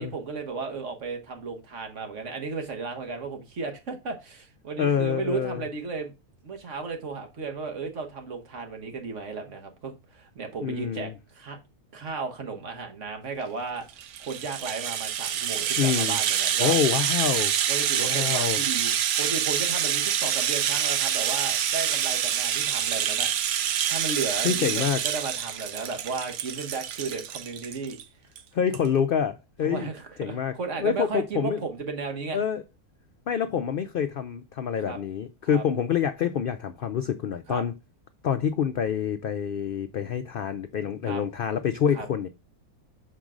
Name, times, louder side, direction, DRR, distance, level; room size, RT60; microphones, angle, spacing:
voice 1, 0.0-6.1 6.4-11.6 11.9-13.8 14.2-16.8 17.7-23.3 23.9-28.0 29.6-32.4 34.8-35.0 35.4-35.6 37.5-37.6 41.1-41.2 41.9-42.1, right 4 dB, 55° right, 1.5 m, -34 dB
voice 2, 4.8-5.6 10.6-11.1 15.8-16.2 16.6-17.5 18.0-18.6 24.4-25.0 28.5-29.9 30.2-30.5 30.8-31.6 32.3-32.6 33.3-37.7 38.2-42.3, left 8 dB, 75° left, 0.5 m, -27 dB
Rattle (instrument), 13.9-28.0 28.4-28.5 28.7-28.9, right 9 dB, 85° right, 1.2 m, -27 dB
6.2 x 4.6 x 3.7 m
omnidirectional pair, 1.5 m